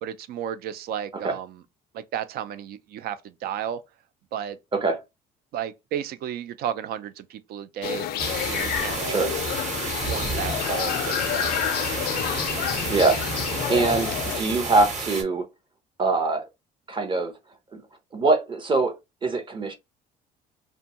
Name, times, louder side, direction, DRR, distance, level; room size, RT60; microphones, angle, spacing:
voice 1, 0.0-1.6 1.9-3.8 4.3-4.6 5.5-8.1 8.5-9.3 10.0-12.1 13.6-13.7, right 9 dB, 65° right, 0.4 m, -33 dB
sound 1, 7.8-14.4, left 11 dB, 65° left, 0.4 m, -29 dB
sound 2, 8.2-15.2, right 3 dB, 45° right, 1.1 m, -31 dB
voice 2, 12.9-13.2 13.7-15.5 16.0-16.4 16.9-17.3 17.7-17.8 18.1-18.9 19.2-19.7, right 3 dB, 30° right, 0.7 m, -23 dB
2.6 x 2.2 x 2.9 m
cardioid pair, 110°, 17 cm